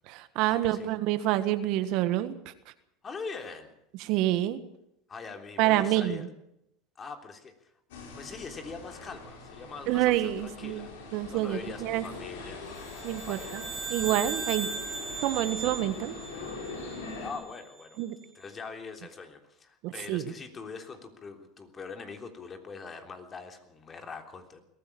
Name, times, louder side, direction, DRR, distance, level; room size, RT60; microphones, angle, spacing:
voice 1, 0.1-2.4 4.0-4.6 5.6-6.3 9.9-10.9 11.1-12.1 13.0-13.6 13.9-14.7 15.2-16.1 18.0-18.1 19.8-20.3, right 14 dB, 60° right, 12 dB, 1.5 m, -27 dB
voice 2, 3.0-3.7 5.1-6.3 7.0-7.7 8.1-10.9 11.3-12.6 13.0-13.7 14.3-14.6 17.2-18.0 18.3-24.6, left 4 dB, 30° left, 6 dB, 3.5 m, -43 dB
sound 1, 7.9-17.3, left 3 dB, 80° left, 5.6 m, -43 dB
sound 2, 12.8-17.3, right 4 dB, 25° right, 2.9 m, -38 dB
21.5 x 15.0 x 8.7 m, 0.80 s
hypercardioid pair, 95°, 0 cm